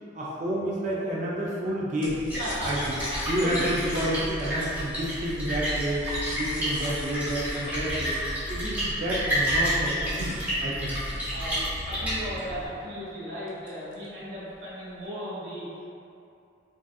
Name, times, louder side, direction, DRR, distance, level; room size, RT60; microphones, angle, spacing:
voice 1, 0.1-2.2 2.6-2.8 3.3-8.2 8.5-10.4 10.6-10.9, right 1 dB, 40° right, -6 dB, 0.4 m, -30 dB
sound 1, 2.0-8.9 9.5-11.9 12.3-12.4 12.7-13.0 13.5-14.2 14.5-15.1, left 2 dB, 75° left, 0.5 m, -45 dB
Splash splatter, 2.1-12.7, equal, 10° right, 1.0 m, -30 dB
voice 2, 2.4-3.0 3.3-3.6 3.9-4.0 11.3-15.7, equal, 65° right, -9 dB, 1.1 m, -36 dB
3.6 x 2.6 x 2.3 m, 2.5 s
head